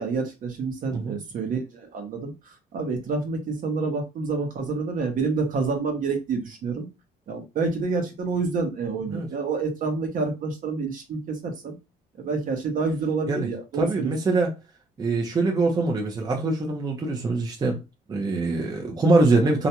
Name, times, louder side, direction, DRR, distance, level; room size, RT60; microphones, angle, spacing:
voice 1, 0.0-6.9 7.3-11.7 12.2-14.1, right 4 dB, 50° right, 0.8 m, -28 dB
voice 2, 0.9-1.2 9.1-9.3 13.3-13.5 13.8-14.5 15.0-17.8 18.1-19.7, right 3 dB, 25° right, 0.6 m, -23 dB
2.4 x 2.2 x 2.8 m
cardioid pair, 110°, 17 cm